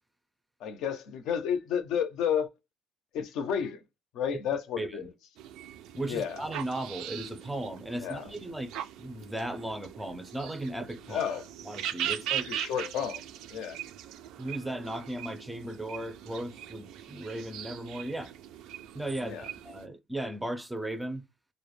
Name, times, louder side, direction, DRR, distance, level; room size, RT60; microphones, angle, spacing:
voice 1, 0.6-2.5 3.1-3.8 4.1-5.0 6.0-6.4 8.0-8.3 11.1-11.4 12.1-13.2 13.5-13.8 19.2-19.4, left 8 dB, 75° left, 0.5 m, -31 dB
voice 2, 4.8-5.1 5.9-8.7 9.0-11.2 11.6-12.5 14.4-18.3 18.9-21.2, right 1 dB, 5° right, 0.4 m, -36 dB
sound 1, 5.4-19.9, right 11 dB, 80° right, 0.3 m, -40 dB
2.2 x 2.0 x 3.0 m
cardioid pair, 120°, 0 cm